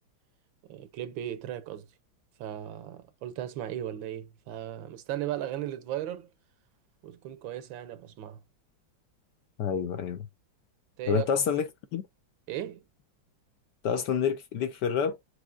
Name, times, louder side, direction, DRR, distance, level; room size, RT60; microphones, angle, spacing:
voice 1, 0.6-1.9 2.4-6.3 7.0-8.4 11.0-11.3 12.5-12.8, right 12 dB, 75° right, 1.4 m, -36 dB
voice 2, 9.6-10.3 11.1-12.0 13.8-15.2, left 7 dB, 65° left, 1.2 m, -28 dB
6.2 x 3.1 x 2.5 m
omnidirectional pair, 2.2 m